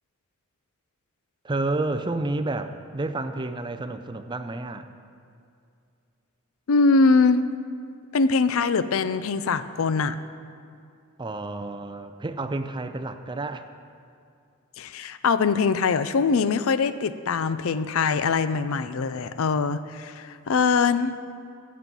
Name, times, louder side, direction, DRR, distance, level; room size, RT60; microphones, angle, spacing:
voice 1, 1.4-4.9 11.2-13.6, right 2 dB, 20° right, 9 dB, 0.5 m, -30 dB
voice 2, 6.7-7.5 8.1-10.2 14.8-21.1, left 4 dB, 60° left, 13 dB, 0.4 m, -22 dB
15.0 x 7.5 x 5.4 m, 2.4 s
head